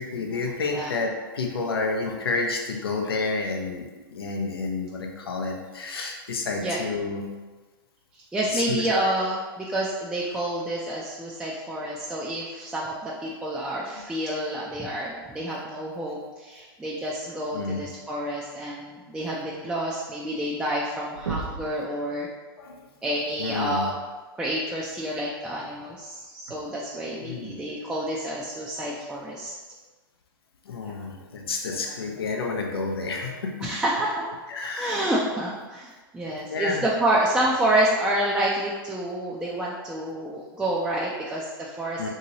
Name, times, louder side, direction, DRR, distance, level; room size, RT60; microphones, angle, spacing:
voice 1, 0.0-7.3 8.5-9.1 17.5-17.9 22.6-22.9 23.4-23.9 27.2-27.6 28.1-28.2 30.6-33.7 34.5-35.1 36.5-36.8 42.0-42.1, left 3 dB, 90° left, 1 dB, 0.4 m, -30 dB
voice 2, 8.3-22.3 23.0-23.9 24.4-29.5 33.6-34.3 34.8-42.1, right 1 dB, 5° right, -5 dB, 0.3 m, -28 dB
sound 1, 21.1-21.8 23.5-23.6 25.5-25.6 26.5-26.6, right 4 dB, 90° right, 0.5 m, -33 dB
2.9 x 2.7 x 2.8 m, 1.3 s
hypercardioid pair, 115°, 12 cm